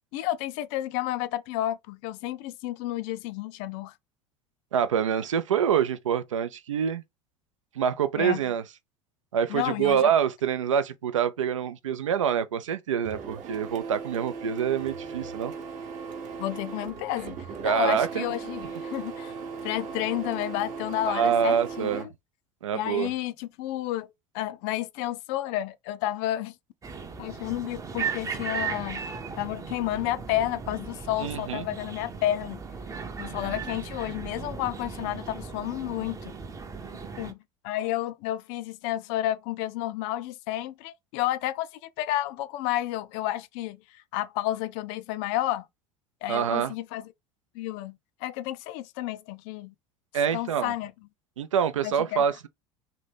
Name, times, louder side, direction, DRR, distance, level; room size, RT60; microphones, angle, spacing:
voice 1, 0.1-3.9 8.2-8.4 9.5-10.1 16.4-19.3 19.6-22.1 22.7-24.1 24.3-26.6 27.2-29.0 29.4-32.6 33.2-36.3 37.2-37.4 37.6-41.7 42.0-45.7 46.2-47.1 47.5-49.7 50.3-50.9 51.8-52.2, left 14 dB, 55° left, 0.4 m, -31 dB
voice 2, 4.7-7.0 7.8-8.6 9.3-15.5 17.6-18.3 21.1-22.1 22.6-23.1 31.2-31.7 46.3-46.7 50.1-50.7 51.4-52.5, right 8 dB, 80° right, 0.4 m, -26 dB
Printer, 13.0-22.0, right 5 dB, 50° right, 0.9 m, -38 dB
sound 1, 26.8-37.3, right 6 dB, 20° right, 0.6 m, -37 dB
2.9 x 2.7 x 3.3 m
figure-of-eight pair, 70°, 16 cm